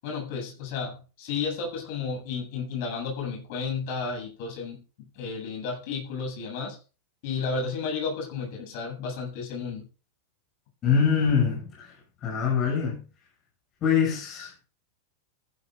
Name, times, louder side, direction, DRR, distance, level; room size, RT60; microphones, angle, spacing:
voice 1, 0.0-4.8 5.2-6.8 7.2-9.9, left 5 dB, 60° left, 7.7 m, -32 dB
voice 2, 10.8-11.9 12.2-13.0 13.8-14.5, left 6 dB, 35° left, 6.4 m, -24 dB
15.0 x 12.5 x 2.6 m
hypercardioid pair, 95°, 0 cm